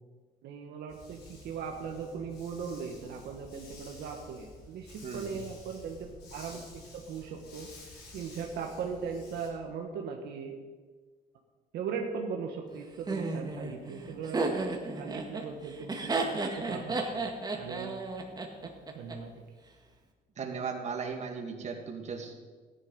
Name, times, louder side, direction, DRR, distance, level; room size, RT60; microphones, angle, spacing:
voice 1, 0.4-10.5 11.7-14.5 15.0-16.2 16.6-17.0 17.6-17.9 18.9-19.3, right 6 dB, 75° right, 2 dB, 1.6 m, -39 dB
Dog, 0.9-9.5, left 2 dB, 75° left, 4.4 m, -51 dB
voice 2, 5.0-5.4 20.4-22.3, right 5 dB, 40° right, 2 dB, 2.3 m, -37 dB
Laughter, 13.1-19.1, right 3 dB, 25° right, 1.9 m, -33 dB
14.5 x 11.0 x 5.5 m, 1.4 s
cardioid pair, 110°, 17 cm